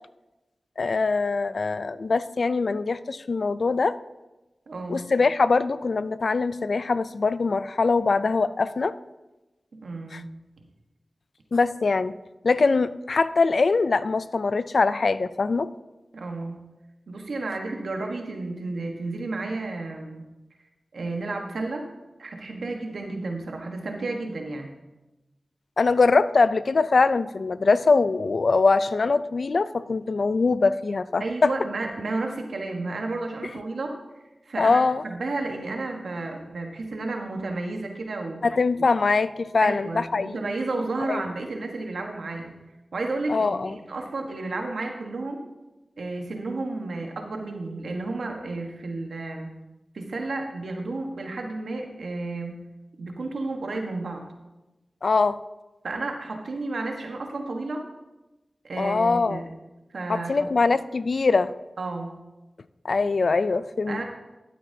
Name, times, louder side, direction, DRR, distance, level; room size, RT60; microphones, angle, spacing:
voice 1, 0.8-4.0 4.9-9.0 10.1-10.2 11.5-12.1 12.4-15.7 25.8-31.5 34.6-35.0 38.4-40.4 41.1-41.2 43.3-43.8 55.0-55.4 58.8-59.4 60.1-61.5 62.8-64.0, left 4 dB, 70° left, 15 dB, 0.3 m, -22 dB
voice 2, 4.7-5.1 9.7-10.3 16.1-16.6 17.1-20.3 20.9-21.9 22.2-24.7 31.2-34.0 34.4-38.4 39.6-42.6 42.9-45.4 46.0-49.5 49.9-52.6 53.0-54.2 55.8-57.9 58.6-59.5 59.9-60.5 61.8-62.2 63.9-64.0, right 2 dB, 80° right, 3 dB, 1.2 m, -32 dB
12.5 x 8.6 x 2.7 m, 1.0 s
cardioid pair, 45°, 0 cm